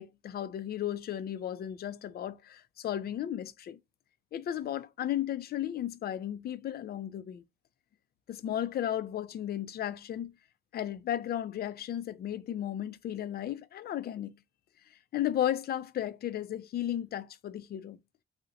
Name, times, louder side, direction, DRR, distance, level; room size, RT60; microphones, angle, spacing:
voice 1, 0.0-3.8 4.3-7.4 8.3-10.3 10.7-14.3 15.1-18.0, left 11 dB, 50° left, 0.4 m, -34 dB
2.8 x 2.1 x 3.7 m
cardioid pair, 90°, 20 cm